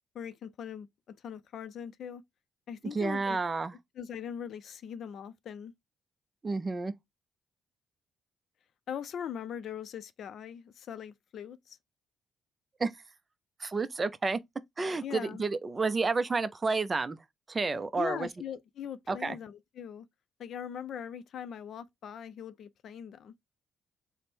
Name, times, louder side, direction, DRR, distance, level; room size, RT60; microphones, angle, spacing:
voice 1, 0.1-0.9 1.2-2.2 2.7-3.4 4.0-5.7 8.9-11.8 15.0-15.4 18.0-20.1 20.4-23.3, left 8 dB, 65° left, 0.4 m, -40 dB
voice 2, 2.8-3.7 6.4-6.9 12.8-12.9 13.6-14.4 14.8-17.2 17.5-18.3 19.1-19.4, right 4 dB, 30° right, 0.4 m, -30 dB
3.4 x 2.0 x 4.2 m
cardioid pair, 90°, 0 cm